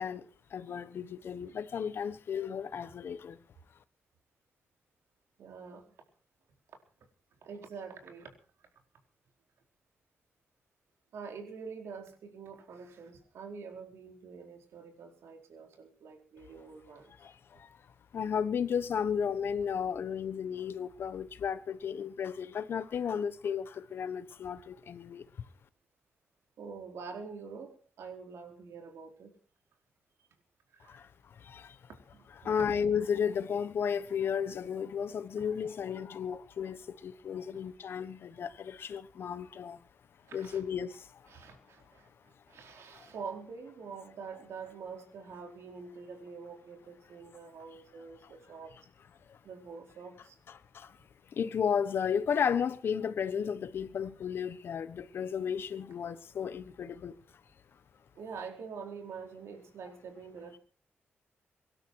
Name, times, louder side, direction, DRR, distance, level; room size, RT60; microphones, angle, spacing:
voice 1, 0.0-3.4 17.2-17.7 18.1-25.2 30.9-31.1 31.4-31.8 32.4-39.8 40.3-41.2 42.9-43.1 48.2-48.3 49.3-49.4 50.5-51.0 51.3-57.2, left 7 dB, 60° left, 1.2 m, -34 dB
voice 2, 5.4-5.9 7.4-8.3 11.1-17.1 26.6-29.3 30.7-31.0 32.1-32.7 40.3-40.6 41.3-42.1 42.5-48.7 49.4-50.4 58.1-60.6, right 5 dB, 80° right, 4.4 m, -46 dB
24.0 x 12.0 x 4.7 m
wide cardioid pair, 160°, 4 cm